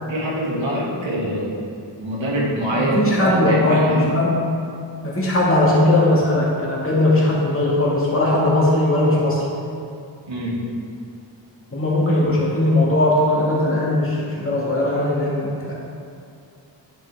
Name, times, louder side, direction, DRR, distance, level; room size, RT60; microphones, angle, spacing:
voice 1, 0.1-1.5 2.0-4.1 10.3-10.6, equal, 85° right, -5 dB, 2.0 m, -24 dB
voice 2, 2.8-4.4 5.0-9.4 11.7-15.7, left 1 dB, 30° left, -6 dB, 1.9 m, -19 dB
10.0 x 5.8 x 3.5 m, 2.4 s
wide cardioid pair, 125°, 45 cm